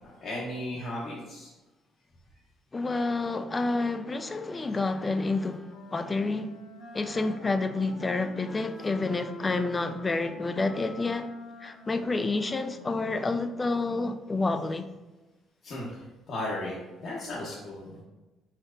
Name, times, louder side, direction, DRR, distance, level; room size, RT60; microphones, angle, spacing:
voice 1, 0.0-1.5 15.6-18.0, left 1 dB, 60° left, 1.0 m, -36 dB
voice 2, 2.7-6.5 6.9-11.3 11.6-14.9, left 3 dB, 25° left, 0.3 m, -29 dB
Wind instrument woodwind instrument, 5.1-13.7, left 1 dB, 85° left, 1.2 m, -48 dB
4.6 x 4.4 x 2.6 m
cardioid pair, 85°, 0 cm